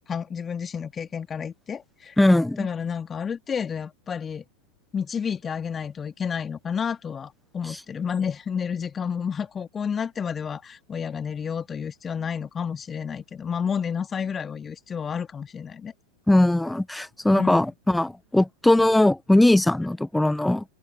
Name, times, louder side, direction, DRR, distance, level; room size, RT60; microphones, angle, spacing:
voice 1, 0.0-2.2 2.6-4.4 4.9-15.9 17.3-17.6, left 7 dB, 20° left, 2.3 m, -30 dB
voice 2, 2.2-2.7 16.3-20.6, left 1 dB, 5° left, 0.7 m, -20 dB
open air
figure-of-eight pair, 90°, 0 cm